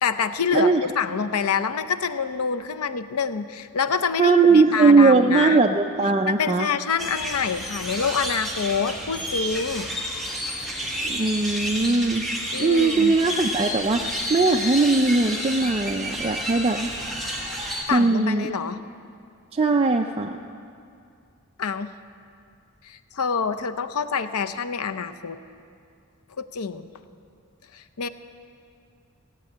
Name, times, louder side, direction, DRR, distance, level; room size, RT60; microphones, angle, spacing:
voice 1, 0.0-5.6 6.3-9.9 12.5-13.1 17.9-18.8 21.6-21.9 22.8-25.4 26.4-26.9 27.7-28.1, left 6 dB, 85° left, 10 dB, 0.6 m, -26 dB
voice 2, 4.2-6.7 11.0-12.3 12.6-16.9 17.9-18.5 19.5-20.4, right 3 dB, 25° right, 3 dB, 0.4 m, -19 dB
sound 1, 7.0-17.8, equal, ahead, 1.5 m, -30 dB
17.0 x 8.4 x 8.6 m, 2.4 s
head